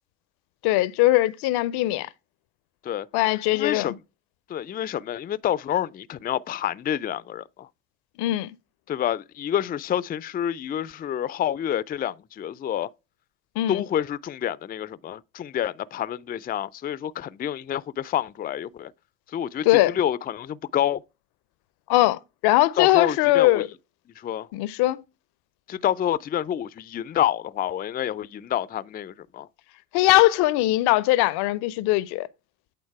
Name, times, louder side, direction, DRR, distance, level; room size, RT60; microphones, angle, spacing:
voice 1, 0.6-2.1 3.1-3.9 8.2-8.5 13.6-13.8 19.6-19.9 21.9-23.7 24.5-25.0 29.9-32.3, left 17 dB, 70° left, 0.6 m, -21 dB
voice 2, 3.5-3.9 4.5-7.7 8.9-12.9 13.7-18.9 19.3-21.0 22.8-23.6 24.2-24.5 25.7-29.5, left 10 dB, 25° left, 0.4 m, -28 dB
8.7 x 3.9 x 4.6 m
hypercardioid pair, 60°, 41 cm